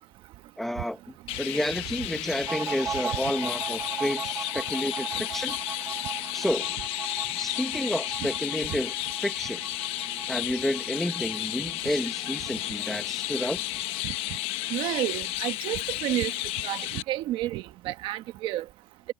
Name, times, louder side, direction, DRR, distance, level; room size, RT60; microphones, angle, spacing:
voice 1, 0.6-1.0 1.4-5.6 6.3-6.7 7.4-8.9 9.2-9.6 10.3-13.6, left 1 dB, 5° left, 0.8 m, -30 dB
Chirp tweet, 1.3-17.0, left 17 dB, 70° left, 0.8 m, -33 dB
sound 1, 2.4-15.6 15.9-16.0 16.2-17.0, right 7 dB, 25° right, 1.0 m, -39 dB
sound 2, 5.1-13.8, right 11 dB, 40° right, 5.1 m, -55 dB
voice 2, 14.7-16.3 16.6-18.6, right 15 dB, 60° right, 1.3 m, -30 dB
cardioid pair, 180°, 10 cm